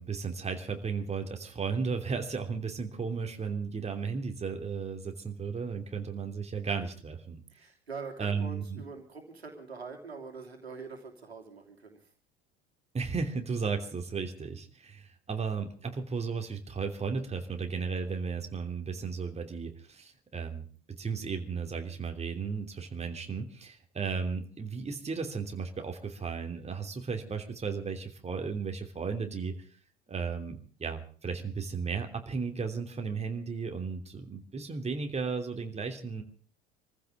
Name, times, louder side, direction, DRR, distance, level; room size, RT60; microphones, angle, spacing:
voice 1, 0.0-7.4 8.2-8.8 12.9-29.6 30.1-36.2, right 5 dB, 20° right, 4 dB, 3.0 m, -35 dB
voice 2, 7.5-12.0, right 4 dB, 85° right, 3 dB, 3.1 m, -44 dB
26.5 x 15.0 x 3.6 m, 0.43 s
figure-of-eight pair, 70°, 31 cm